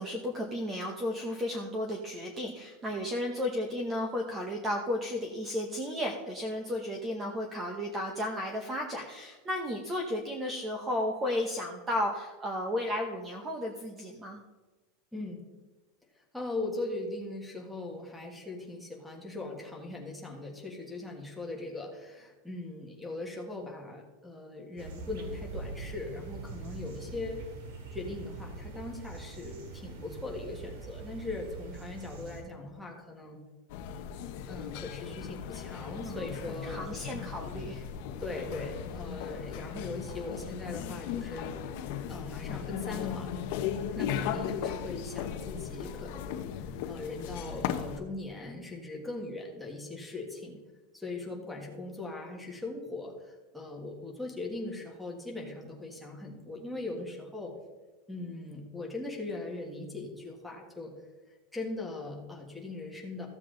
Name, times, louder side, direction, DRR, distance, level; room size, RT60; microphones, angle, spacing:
voice 1, 0.0-14.4 36.0-36.4 36.6-37.8, left 1 dB, 15° right, 3 dB, 0.8 m, -34 dB
voice 2, 15.1-15.4 16.3-27.4 27.9-33.4 34.5-37.0 38.2-41.5 42.1-43.3 43.9-46.4 46.9-50.6 50.9-57.5 58.1-60.9 61.5-63.3, left 2 dB, ahead, -2 dB, 1.5 m, -40 dB
sound 1, 24.8-32.4, right 3 dB, 75° right, 2.1 m, -43 dB
sound 2, 33.7-48.0, left 8 dB, 50° left, 0.9 m, -37 dB
14.5 x 7.5 x 3.8 m, 1.2 s
supercardioid pair, 175°, 0 cm